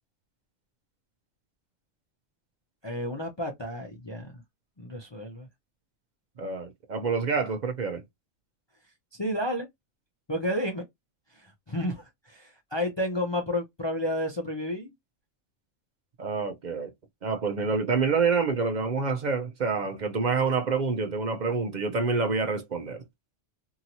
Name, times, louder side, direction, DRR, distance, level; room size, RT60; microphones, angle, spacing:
voice 1, 2.8-4.4 4.8-5.5 9.2-9.7 10.3-10.8 11.3-14.9, left 1 dB, 35° left, 0.4 m, -31 dB
voice 2, 6.4-8.0 16.2-16.9 17.2-23.0, right 4 dB, 50° right, 0.5 m, -27 dB
2.9 x 2.7 x 2.6 m
omnidirectional pair, 1.4 m